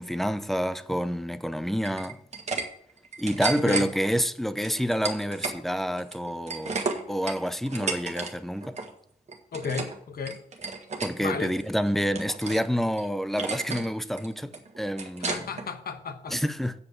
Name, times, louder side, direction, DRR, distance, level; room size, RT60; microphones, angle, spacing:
voice 1, 0.0-2.2 3.2-6.8 7.1-8.8 11.0-15.5 16.3-16.7, equal, ahead, 0.6 m, -28 dB
sound 1, 1.8-2.7 3.0-3.9 4.6-5.6 5.9-8.3 8.6-8.9 9.3-10.0 10.3-11.1 11.6-12.7 13.0-13.1 13.4-13.9 14.2-15.7, right 4 dB, 45° right, 1.6 m, -33 dB
voice 2, 9.5-10.4 11.2-11.6 15.3-16.4, left 5 dB, 75° left, 1.3 m, -33 dB
8.6 x 5.4 x 7.5 m
wide cardioid pair, 105°, 16 cm